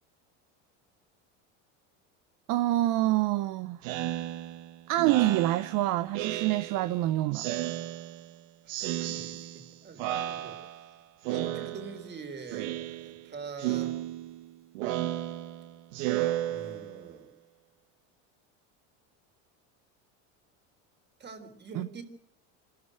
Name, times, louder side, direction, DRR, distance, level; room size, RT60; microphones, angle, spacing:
voice 1, 2.5-3.8 4.9-7.5 21.7-21.9, right 15 dB, 60° right, 0.9 m, -26 dB
Speech synthesizer, 3.8-7.0 7.3-8.4 8.7-9.7 10.0-10.9 11.2-12.1 12.5-13.3 13.6-17.1, right 14 dB, 80° right, 1.6 m, -34 dB
voice 2, 8.6-10.6 11.3-14.0 16.5-17.3 21.2-22.0, right 5 dB, 30° right, 3.9 m, -44 dB
26.0 x 13.5 x 8.0 m
supercardioid pair, 115°, 37 cm